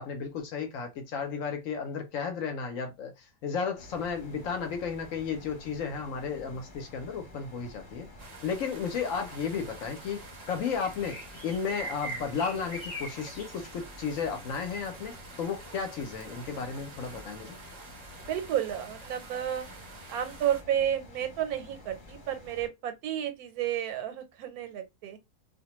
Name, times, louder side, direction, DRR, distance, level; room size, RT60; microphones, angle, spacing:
voice 1, 0.0-8.1 8.4-17.6, left 6 dB, 70° left, 0.9 m, -33 dB
sound 1, 3.8-22.7, equal, 40° left, 1.0 m, -47 dB
sound 2, 8.2-20.6, right 4 dB, 50° right, 0.4 m, -49 dB
voice 2, 18.2-19.7 20.1-25.2, right 10 dB, 85° right, 1.1 m, -31 dB
2.4 x 2.1 x 2.9 m
omnidirectional pair, 1.5 m